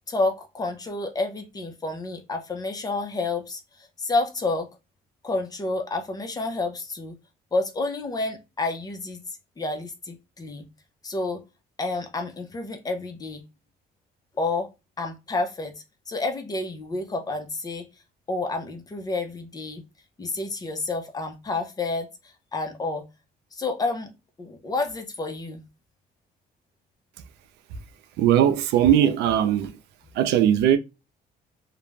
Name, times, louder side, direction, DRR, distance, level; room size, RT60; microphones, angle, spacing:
voice 1, 0.1-4.7 5.2-7.2 7.5-9.2 9.6-10.7 11.0-11.4 11.8-13.4 14.4-14.7 15.0-15.7 16.1-17.9 18.3-19.8 20.2-23.0 23.5-24.1 24.4-25.6, left 3 dB, 20° left, 0.6 m, -29 dB
voice 2, 28.2-29.7 30.2-30.8, right 10 dB, 80° right, 0.4 m, -19 dB
2.4 x 2.1 x 3.1 m
cardioid pair, 110°, 17 cm